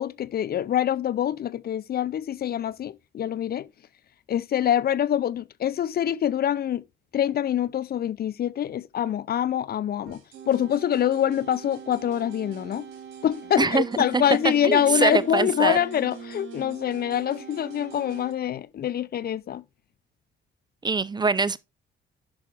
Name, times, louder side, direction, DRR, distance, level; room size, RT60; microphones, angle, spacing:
voice 1, 0.0-3.7 4.3-6.8 7.1-10.2 10.5-12.9 13.2-19.6, left 10 dB, 50° left, 0.5 m, -25 dB
sound 1, 10.0-18.3, right 6 dB, 85° right, 3.0 m, -42 dB
voice 2, 14.6-15.8 20.8-21.6, right 4 dB, 20° right, 0.5 m, -23 dB
10.5 x 5.9 x 3.4 m
cardioid pair, 90°, 20 cm